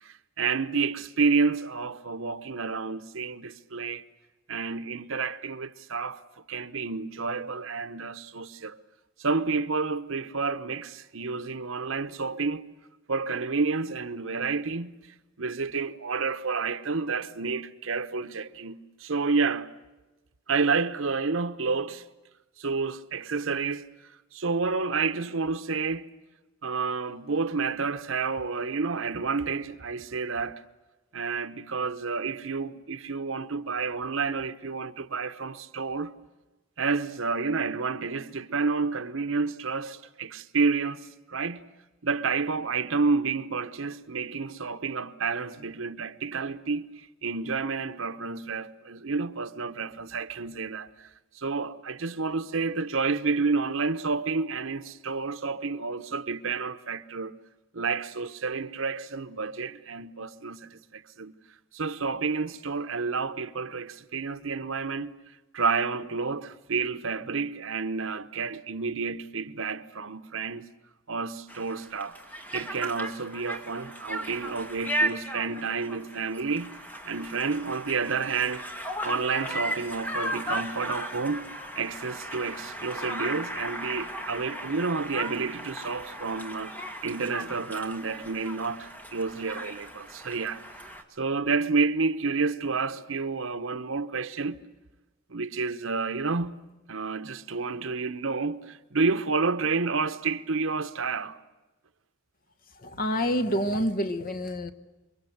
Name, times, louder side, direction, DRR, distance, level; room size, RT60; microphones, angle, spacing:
voice 1, 0.0-4.0 4.5-6.2 6.5-8.8 9.2-12.6 13.1-15.0 15.4-19.7 20.5-22.0 22.6-23.9 24.3-26.1 26.6-30.6 31.1-36.1 36.8-41.6 42.0-51.1 51.3-57.4 57.7-61.3 61.7-65.1 65.5-70.7 71.1-72.2 72.5-76.8 77.0-78.7 79.0-81.5 81.8-86.7 87.0-90.6 91.2-94.6 95.3-101.4, right 4 dB, 75° right, 1.0 m, -30 dB
Conversation, 71.5-91.0, right 1 dB, 10° left, 1.9 m, -36 dB
voice 2, 102.8-104.7, equal, 45° left, 1.3 m, -27 dB
28.0 x 24.0 x 8.0 m
head